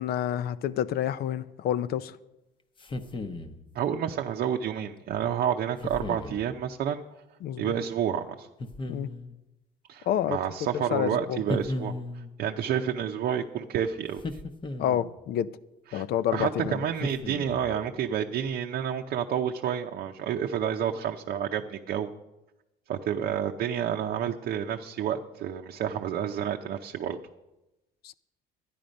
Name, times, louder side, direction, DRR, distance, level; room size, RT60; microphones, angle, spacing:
voice 1, 0.0-2.2 7.4-7.7 8.9-9.1 10.1-10.4 10.7-11.4 14.8-15.5 15.9-16.8 28.0-28.1, left 10 dB, 65° left, 0.5 m, -28 dB
sound 1, 2.8-3.6 5.8-6.4 8.6-9.4 11.5-12.4 14.2-15.2 17.0-17.8, left 2 dB, 30° left, 0.9 m, -35 dB
voice 2, 3.7-7.0 7.6-8.5 9.9-14.4 15.9-16.0 16.3-22.1 22.9-27.2, right 9 dB, 60° right, 0.7 m, -30 dB
13.0 x 10.0 x 5.2 m
cardioid pair, 110°, 17 cm